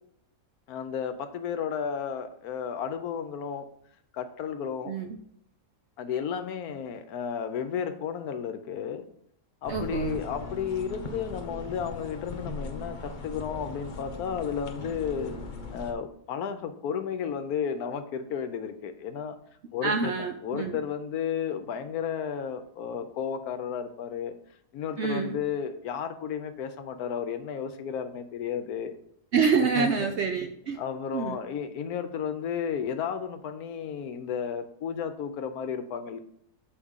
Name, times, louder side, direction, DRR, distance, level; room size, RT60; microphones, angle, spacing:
voice 1, 0.7-3.7 4.1-4.9 6.0-9.0 9.6-15.4 15.7-19.4 19.7-20.1 20.4-24.3 24.7-28.9 29.8-30.1 30.8-36.2, left 7 dB, 75° left, 9 dB, 1.1 m, -33 dB
voice 2, 4.9-5.2 9.7-10.2 19.8-20.8 25.0-25.4 29.3-30.8 31.1-31.4, right 5 dB, 65° right, 5 dB, 0.7 m, -27 dB
sound 1, 9.6-15.9, left 3 dB, 50° left, 0.6 m, -39 dB
7.0 x 5.1 x 3.6 m, 0.70 s
omnidirectional pair, 1.7 m